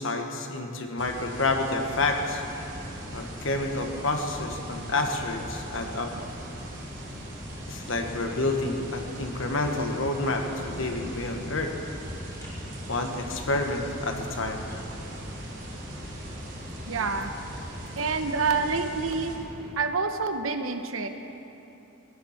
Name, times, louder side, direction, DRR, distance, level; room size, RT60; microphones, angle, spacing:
voice 1, 0.0-2.4 3.1-6.1 7.7-11.7 12.9-14.6, left 2 dB, 70° left, 3 dB, 1.3 m, -29 dB
sound 1, 1.0-19.4, right 1 dB, 50° right, 3.7 m, -40 dB
sound 2, 1.8-19.7, equal, 15° left, 2.2 m, -44 dB
voice 2, 16.9-17.3 18.0-19.3 19.8-21.1, right 4 dB, 80° right, 7 dB, 0.9 m, -27 dB
16.0 x 11.0 x 5.9 m, 2.9 s
head